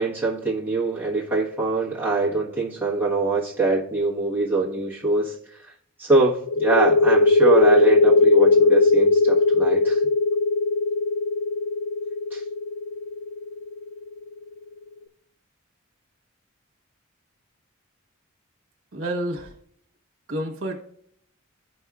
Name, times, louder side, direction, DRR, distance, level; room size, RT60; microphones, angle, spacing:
voice 1, 0.0-5.3 6.0-10.0 12.3-12.4, right 3 dB, 10° right, 1.3 m, -23 dB
sound 1, 6.5-13.9, left 3 dB, 75° left, 0.4 m, -18 dB
voice 2, 18.9-19.5 20.3-20.8, right 1 dB, 75° right, 1.2 m, -29 dB
14.0 x 5.4 x 2.4 m
head